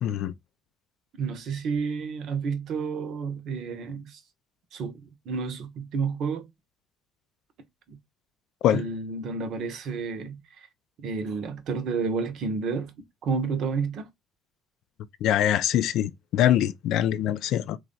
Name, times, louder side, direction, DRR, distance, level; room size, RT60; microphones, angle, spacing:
voice 1, 0.0-0.3 8.6-8.8 15.2-17.8, left 11 dB, 65° left, 0.3 m, -23 dB
voice 2, 1.2-4.2 4.7-6.5 7.9-8.0 8.7-10.7 11.0-12.9 13.2-14.1, right 5 dB, 60° right, 0.7 m, -30 dB
3.2 x 2.3 x 3.8 m
hypercardioid pair, 55°, 0 cm